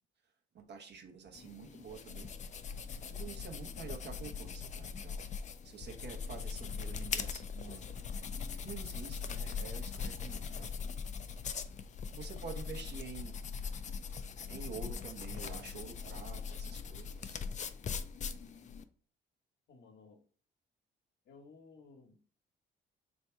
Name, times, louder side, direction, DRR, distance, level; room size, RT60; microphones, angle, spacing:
voice 1, 0.5-2.3 3.0-7.9 8.6-10.9 12.1-13.4 14.5-17.4, right 6 dB, 60° right, 4 dB, 0.9 m, -48 dB
sound 1, 1.3-18.8, left 6 dB, 40° left, 0.4 m, -41 dB
voice 2, 19.7-20.2 21.2-22.3, left 4 dB, 60° left, 4 dB, 1.0 m, -57 dB
3.4 x 2.7 x 4.4 m, 0.43 s
cardioid pair, 90°, 20 cm